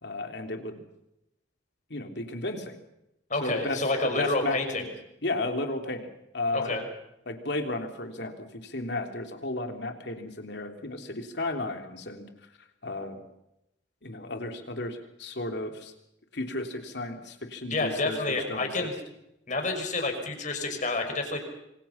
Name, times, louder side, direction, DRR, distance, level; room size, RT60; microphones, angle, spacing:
voice 1, 0.0-0.8 1.9-2.8 3.4-3.8 4.2-4.9 5.2-6.8 7.3-12.2 12.8-13.2 14.0-15.9 16.3-18.9, left 2 dB, 65° left, 5 dB, 3.4 m, -33 dB
voice 2, 3.3-4.8 6.5-6.8 17.7-19.0 19.5-21.4, left 2 dB, 45° left, 5 dB, 5.9 m, -29 dB
26.5 x 25.5 x 5.8 m, 0.86 s
head